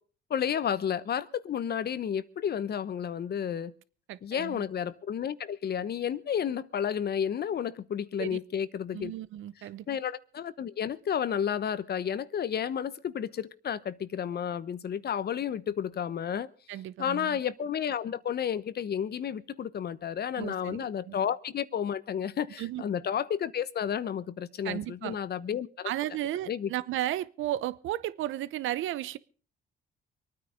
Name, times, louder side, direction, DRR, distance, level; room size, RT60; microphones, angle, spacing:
voice 1, 0.3-3.7 4.2-9.1 9.9-16.5 17.0-25.9 26.5-26.7, left 8 dB, 55° left, 0.9 m, -31 dB
voice 2, 4.1-4.6 8.2-8.4 8.9-9.9 16.7-17.4 20.4-21.2 22.6-22.8 24.6-25.2 25.8-29.2, right 13 dB, 85° right, 0.8 m, -34 dB
24.5 x 9.6 x 5.1 m
cardioid pair, 90°, 20 cm